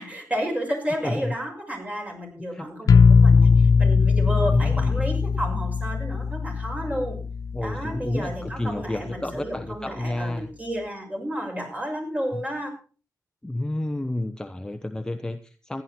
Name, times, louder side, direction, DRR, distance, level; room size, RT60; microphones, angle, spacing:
voice 1, 0.0-7.2 7.6-12.7, equal, 20° right, 1 dB, 6.2 m, -31 dB
voice 2, 1.0-1.3 2.4-3.0 4.5-5.0 7.5-10.5 12.3-12.4 13.4-15.8, left 1 dB, 10° left, 7 dB, 1.0 m, -30 dB
sound 1, 2.9-8.7, left 5 dB, 60° left, 0.7 m, -20 dB
15.5 x 11.0 x 4.4 m, 0.38 s
cardioid pair, 80°, 7 cm